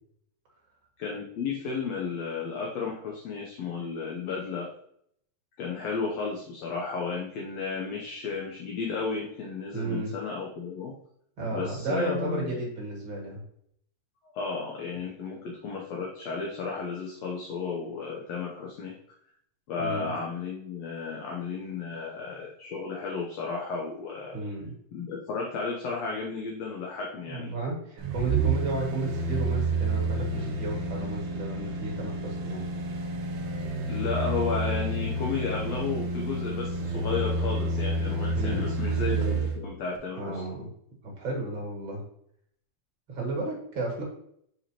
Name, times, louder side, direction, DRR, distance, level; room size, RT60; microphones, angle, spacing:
voice 1, 1.0-4.7 5.6-10.9 11.5-12.6 14.2-18.9 19.7-24.4 24.9-27.5 33.9-40.4, left 5 dB, 70° left, -1 dB, 1.8 m, -33 dB
voice 2, 9.7-10.1 11.4-13.4 19.8-20.1 24.3-24.7 27.3-32.7 38.3-38.7 40.2-40.7 41.0-42.0 43.1-44.0, right 2 dB, 40° right, -2 dB, 2.5 m, -33 dB
sound 1, 28.0-39.6 40.0-40.1, right 2 dB, 85° right, 1.1 m, -29 dB
6.8 x 4.8 x 2.9 m, 0.69 s
omnidirectional pair, 3.6 m